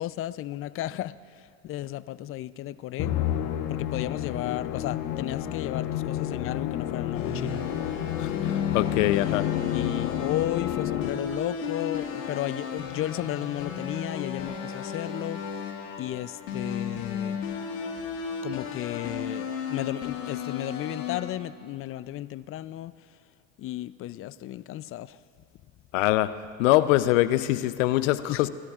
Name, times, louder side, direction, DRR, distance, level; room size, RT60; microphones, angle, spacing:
voice 1, 0.0-3.1 3.7-7.6 9.7-15.4 16.0-17.4 18.4-22.9 23.6-25.2 28.3-28.5, left 14 dB, 35° left, 17 dB, 0.4 m, -34 dB
Musical instrument, 3.0-11.5, left 11 dB, 55° left, 1.1 m, -30 dB
sound 1, 7.1-21.2, left 6 dB, 90° left, 1.9 m, -34 dB
voice 2, 8.2-9.5 25.9-26.3 26.6-28.5, left 16 dB, 75° left, 14 dB, 0.7 m, -23 dB
Guitar, 13.0-14.7, right 6 dB, 65° right, 3.5 m, -50 dB
27.0 x 13.0 x 2.4 m, 2.4 s
hypercardioid pair, 85°, 38 cm